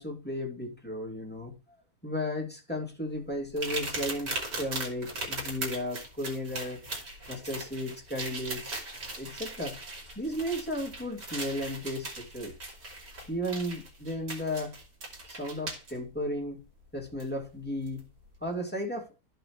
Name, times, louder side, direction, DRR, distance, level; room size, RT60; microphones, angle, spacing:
voice 1, 0.0-1.5 2.0-8.7 9.2-9.8 10.1-12.5 13.3-14.8 15.3-16.6 16.9-18.0 18.4-19.1, left 1 dB, 5° left, 2.5 m, -34 dB
sound 1, 3.6-15.9 17.2-17.3 17.9-18.0, right 2 dB, 75° right, 3.4 m, -39 dB
14.5 x 5.6 x 3.1 m
omnidirectional pair, 1.8 m